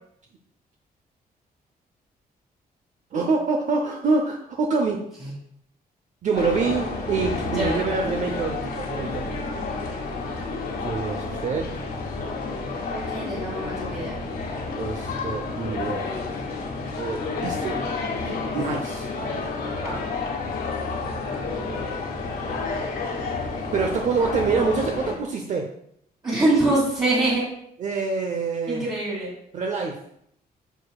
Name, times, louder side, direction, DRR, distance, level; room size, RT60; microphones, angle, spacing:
voice 1, 3.1-5.0 6.2-9.3 10.8-11.8 14.8-16.1 17.0-17.8 18.2-19.1 23.5-25.7 27.8-28.9 29.5-30.0, right 4 dB, 50° right, 3 dB, 0.7 m, -26 dB
sound 1, 6.4-25.2, left 3 dB, 80° left, 1.9 m, -30 dB
voice 2, 7.4-7.9 12.9-14.2 17.4-17.6 19.8-20.0 26.2-27.4 28.7-29.3, right 2 dB, 30° right, -10 dB, 2.6 m, -24 dB
9.0 x 6.8 x 2.3 m, 0.71 s
wide cardioid pair, 170°, 16 cm